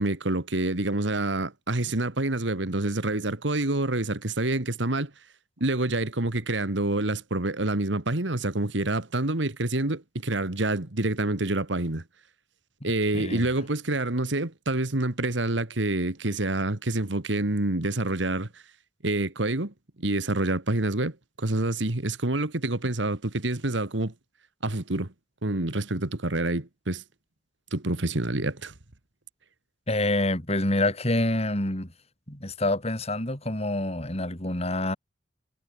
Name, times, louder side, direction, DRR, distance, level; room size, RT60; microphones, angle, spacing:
voice 1, 0.0-5.1 5.6-12.0 12.8-18.5 19.0-24.1 24.6-25.1 25.4-27.0 27.7-28.7, right 2 dB, 75° right, 2.0 m, -27 dB
voice 2, 29.9-31.9 32.3-35.0, left 1 dB, 35° left, 4.7 m, -27 dB
head